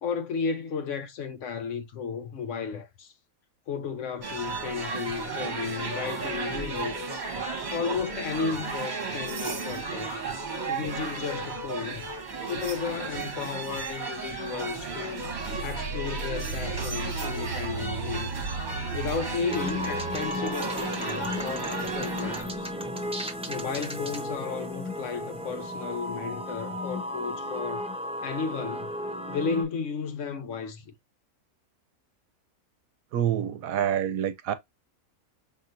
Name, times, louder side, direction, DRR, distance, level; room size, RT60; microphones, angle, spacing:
voice 1, 0.0-3.1 3.7-7.0 7.7-10.2 10.7-12.1 12.5-15.2 15.6-18.3 18.9-22.7 23.5-27.8 28.2-28.9 29.3-30.9, left 6 dB, 65° left, 0.9 m, -33 dB
sound 1, 4.2-22.4, right 4 dB, 35° right, 1.1 m, -34 dB
sound 2, 15.2-20.2, right 4 dB, 90° left, 1.7 m, -36 dB
sound 3, 19.5-29.6, left 1 dB, 5° right, 0.5 m, -34 dB
voice 2, 33.1-34.5, right 10 dB, 75° right, 1.0 m, -27 dB
5.5 x 2.8 x 2.5 m
omnidirectional pair, 1.5 m